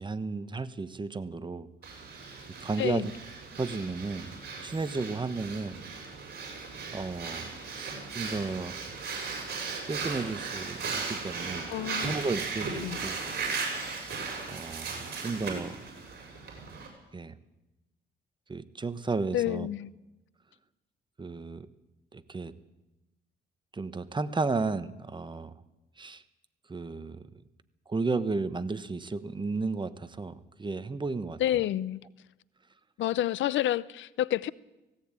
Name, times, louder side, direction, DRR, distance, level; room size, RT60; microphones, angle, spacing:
voice 1, 0.0-1.7 2.6-3.1 3.5-4.3 4.6-5.8 6.9-8.8 9.9-11.7 12.0-13.2 14.5-15.7 17.1-17.3 18.5-19.7 21.2-21.7 22.1-22.5 23.7-25.5 26.0-26.2 26.7-27.3 27.9-31.4, right 3 dB, 25° right, 1.2 m, -33 dB
Breathing, 1.8-16.9, right 4 dB, 50° right, 7.5 m, -37 dB
voice 2, 2.8-3.1 11.7-12.1 12.8-13.0 19.3-19.9 31.4-32.0 33.0-34.5, left 13 dB, 75° left, 0.6 m, -29 dB
17.5 x 17.0 x 8.9 m
cardioid pair, 90°, 20 cm